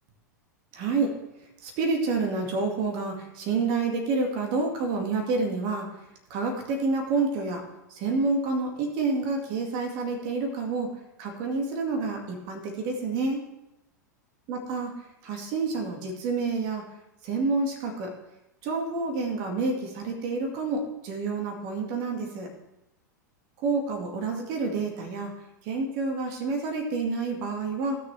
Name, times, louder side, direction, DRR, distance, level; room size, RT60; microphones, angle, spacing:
voice 1, 0.7-1.1 1.6-5.9 6.3-7.6 7.9-10.9 11.2-13.4 14.5-14.9 15.2-16.8 17.2-18.1 18.6-22.5 23.6-25.3 25.6-28.0, right 3 dB, 45° right, 2 dB, 2.0 m, -28 dB
16.5 x 6.5 x 3.3 m, 0.90 s
figure-of-eight pair, 90°, 10 cm